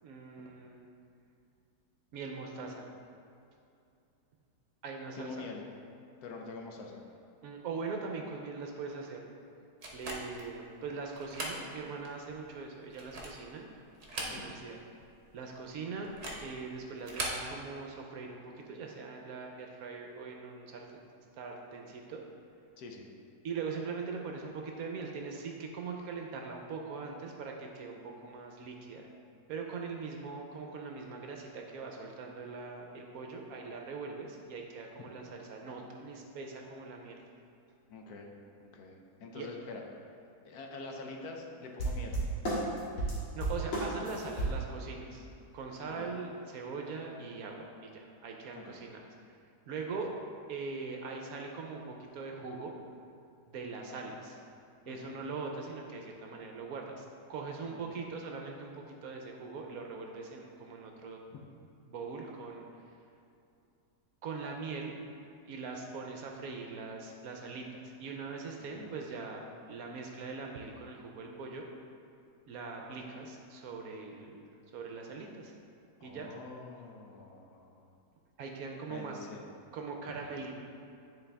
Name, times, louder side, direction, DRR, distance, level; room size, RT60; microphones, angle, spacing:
voice 1, 0.0-0.9 2.1-2.9 4.8-5.5 7.4-9.2 9.9-13.7 14.3-14.8 15.3-16.1 16.4-21.1 21.4-22.2 23.4-29.1 29.5-37.2 39.3-39.5 43.3-45.3 45.5-49.1 49.7-50.1 50.5-52.7 53.5-54.4 54.9-61.2 61.9-62.6 64.2-64.9 65.4-71.6 72.5-74.4 74.7-75.5 76.0-76.3 78.4-79.2 79.7-80.5, right 4 dB, 70° right, 1 dB, 1.0 m, -41 dB
voice 2, 5.2-5.6 6.2-7.0 14.3-14.6 22.8-23.0 34.9-35.3 37.9-38.3 38.6-39.8 40.4-42.2 45.8-46.1 48.5-48.8 54.9-55.2 57.8-57.9 61.3-61.4 68.7-68.9 76.0-77.9 78.9-79.4, left 3 dB, 70° left, 1 dB, 1.2 m, -46 dB
sound 1, 9.8-10.5 11.1-11.6 12.0-12.1 12.8-13.5 13.9-14.7 15.0-15.1 16.0-16.5 17.0-17.4, right 2 dB, 45° right, 1.1 m, -39 dB
sound 2, 41.8-44.6, right 1 dB, 85° left, 2.2 m, -32 dB
9.7 x 4.1 x 3.4 m, 2.6 s
omnidirectional pair, 1.8 m